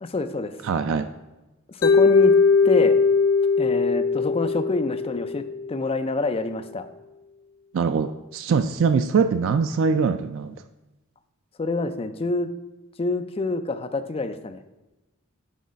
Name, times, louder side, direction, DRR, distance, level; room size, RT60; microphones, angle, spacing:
voice 1, 0.0-0.6 1.7-2.4 2.6-3.0 3.6-6.9 11.6-12.5 13.0-14.6, left 3 dB, 25° left, 9 dB, 0.4 m, -27 dB
voice 2, 0.6-1.1 7.7-10.6, right 5 dB, 60° right, 9 dB, 0.3 m, -22 dB
Mallet percussion, 1.8-5.9, left 4 dB, 90° left, 0.7 m, -20 dB
6.3 x 4.6 x 5.1 m, 1.0 s
head